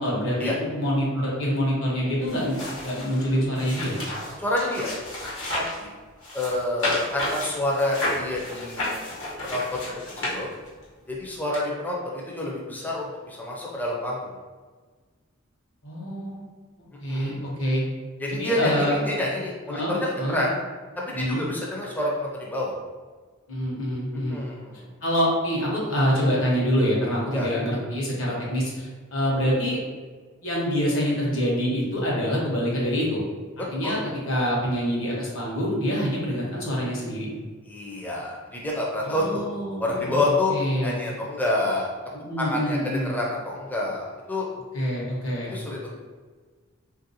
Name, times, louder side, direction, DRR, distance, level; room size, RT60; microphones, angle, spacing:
voice 1, 0.0-3.9 15.8-16.4 17.0-17.8 18.3-19.0 19.7-20.4 21.1-21.4 23.5-24.4 25.0-29.8 30.4-33.2 33.6-34.0 34.3-37.3 39.0-40.2 40.5-41.0 42.2-43.1 44.7-45.5, equal, 65° left, -4 dB, 1.0 m, -26 dB
sound 1, 2.3-5.8 6.2-10.8 11.5-11.6, left 1 dB, 90° left, 1.2 m, -32 dB
voice 2, 4.4-5.0 5.5-5.9 6.3-9.0 9.4-9.9 10.2-10.5 11.1-14.3 17.1-17.5 18.2-20.5 21.0-22.8 24.3-24.9 27.3-27.5 33.8-34.0 37.7-39.4 39.8-40.6 40.8-41.9 42.4-44.5 45.5-45.9, left 1 dB, 10° left, -4 dB, 0.4 m, -28 dB
3.1 x 2.5 x 2.7 m, 1.4 s
head